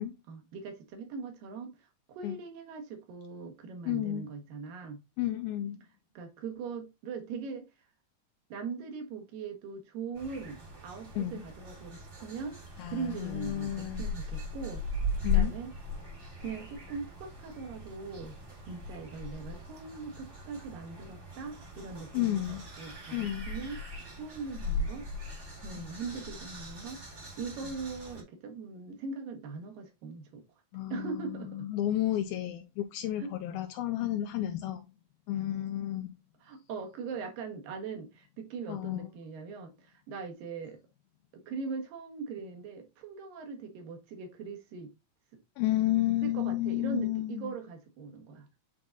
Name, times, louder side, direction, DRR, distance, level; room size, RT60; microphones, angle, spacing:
voice 1, 0.3-5.0 6.2-7.7 8.5-12.6 12.9-14.9 15.3-15.7 16.4-18.3 18.7-23.8 24.2-25.1 25.6-30.4 30.9-31.7 33.2-33.3 36.4-40.8 41.3-44.9 46.2-48.5, right 5 dB, 70° right, 2.9 m, -41 dB
voice 2, 3.9-4.3 5.2-5.8 11.2-11.4 12.8-14.1 15.2-15.5 22.1-22.6 23.1-23.5 25.7-25.9 30.7-34.9 35.3-36.1 38.7-39.1 45.6-47.5, left 13 dB, 80° left, 2.4 m, -32 dB
sound 1, 10.1-28.2, left 3 dB, 30° right, 1.4 m, -38 dB
9.5 x 3.9 x 2.5 m
omnidirectional pair, 4.4 m